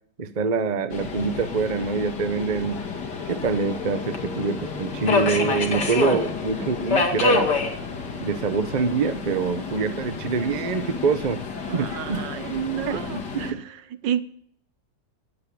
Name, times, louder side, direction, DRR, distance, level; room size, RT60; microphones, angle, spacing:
voice 1, 0.2-2.8 3.3-7.6 8.2-11.4 11.7-12.2 12.9-13.6, right 5 dB, 35° right, 0.8 m, -25 dB
Subway metro underground, 0.9-13.5, left 4 dB, 55° left, 2.6 m, -28 dB
voice 2, 11.7-13.8 14.0-14.2, right 10 dB, 70° right, 1.4 m, -30 dB
17.5 x 8.6 x 8.5 m
omnidirectional pair, 2.1 m